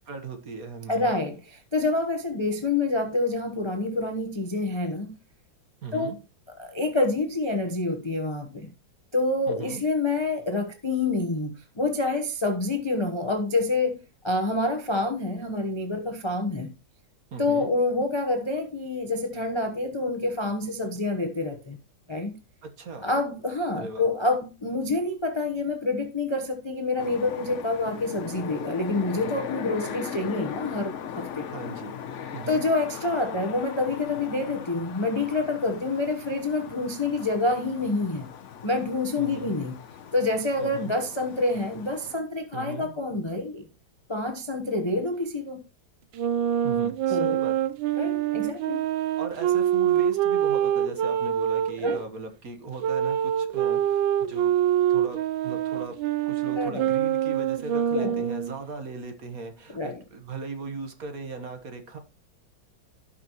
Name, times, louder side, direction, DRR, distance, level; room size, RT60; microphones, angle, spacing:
voice 1, 0.1-1.1 5.8-6.2 9.5-9.8 17.3-17.7 22.6-23.1 23.8-24.1 31.5-31.9 32.3-32.6 39.2-39.5 40.6-40.9 42.5-43.0 46.6-47.5 49.2-54.5 54.9-56.0 56.3-62.0, right 4 dB, 45° right, 1.6 m, -38 dB
voice 2, 0.9-5.2 5.9-6.2 6.6-8.7 9.1-16.7 17.4-21.8 22.1-22.4 23.0-31.5 32.5-38.3 38.6-39.8 40.1-43.6 44.1-45.6 47.1-47.4 48.0-48.8 51.8-52.0 56.5-56.8 57.9-58.2 59.7-60.0, left 2 dB, 35° left, 0.4 m, -27 dB
sound 1, 27.0-42.2, left 8 dB, 80° left, 0.6 m, -39 dB
Wind instrument woodwind instrument, 46.1-52.0 52.8-58.6, right 10 dB, 75° right, 1.3 m, -25 dB
17.0 x 5.9 x 3.0 m
omnidirectional pair, 2.3 m